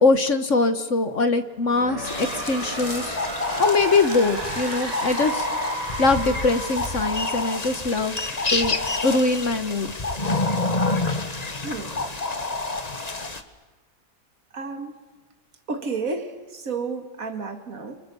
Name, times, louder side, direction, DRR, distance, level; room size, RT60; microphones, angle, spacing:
voice 1, 0.0-3.2 3.6-5.5 6.0-8.1 8.5-8.8 9.0-9.9, left 3 dB, 50° left, 10 dB, 1.5 m, -22 dB
sound 1, 1.5-8.5, right 2 dB, 90° right, 4.3 m, -34 dB
sound 2, 2.0-13.4, left 3 dB, 25° left, 1.4 m, -28 dB
voice 2, 11.6-12.0 14.5-15.0 15.7-18.0, right 4 dB, 55° right, 7 dB, 2.3 m, -31 dB
30.0 x 25.5 x 7.0 m, 1.3 s
omnidirectional pair, 1.8 m